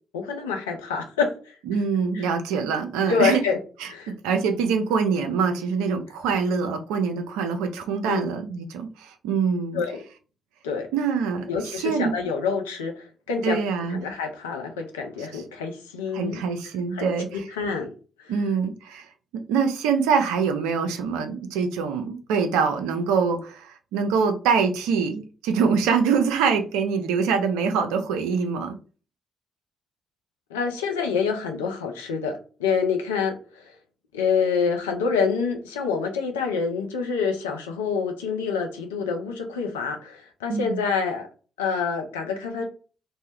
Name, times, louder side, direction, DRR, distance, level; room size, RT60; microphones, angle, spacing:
voice 1, 0.1-1.5 2.1-2.3 3.1-3.6 3.9-4.1 8.0-8.2 9.7-10.0 10.6-10.9 11.5-13.6 13.9-16.4 16.9-17.9 18.2-18.3 30.5-33.7 34.1-41.3 41.6-42.6, left 5 dB, 85° left, 4 dB, 0.4 m, -27 dB
voice 2, 1.7-3.4 3.8-9.8 10.9-12.1 13.4-14.0 15.3-15.4 16.1-17.5 18.3-19.1 19.3-28.8 40.5-40.8, right 5 dB, 75° right, 6 dB, 0.4 m, -24 dB
2.3 x 2.0 x 2.7 m, 0.36 s
hypercardioid pair, 45°, 0 cm